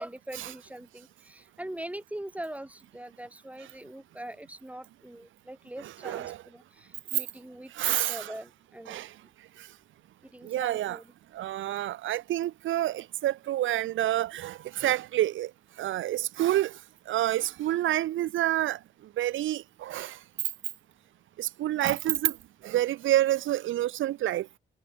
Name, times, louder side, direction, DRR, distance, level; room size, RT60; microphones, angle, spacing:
voice 1, 0.0-9.0 10.3-11.1, right 1 dB, 5° right, 7.3 m, -42 dB
voice 2, 5.8-6.4 7.7-8.3 8.9-9.1 9.6-9.7 10.4-11.0 11.3-15.5 15.8-16.8 17.1-18.8 19.2-20.2 21.4-22.4 22.6-24.5, right 14 dB, 80° right, 1.7 m, -28 dB
cardioid pair, 90°, 20 cm